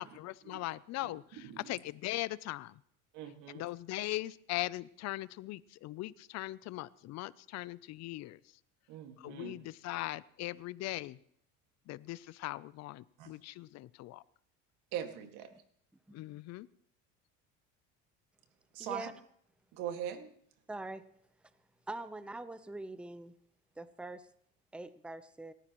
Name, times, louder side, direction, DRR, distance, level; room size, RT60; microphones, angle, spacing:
voice 1, 0.0-2.8 3.5-8.4 9.2-11.2 11.9-14.2 16.1-16.7, left 17 dB, 55° left, 19 dB, 0.6 m, -40 dB
voice 2, 3.1-3.6 8.9-9.6 13.2-13.3 14.9-15.5 18.7-19.1 19.7-20.3, right 9 dB, 75° right, 6 dB, 2.1 m, -41 dB
voice 3, 18.8-19.1 20.7-21.0 21.9-23.3 23.8-24.3 24.7-25.5, right 2 dB, 5° right, 12 dB, 0.8 m, -43 dB
27.5 x 14.0 x 3.1 m, 0.66 s
cardioid pair, 115°, 31 cm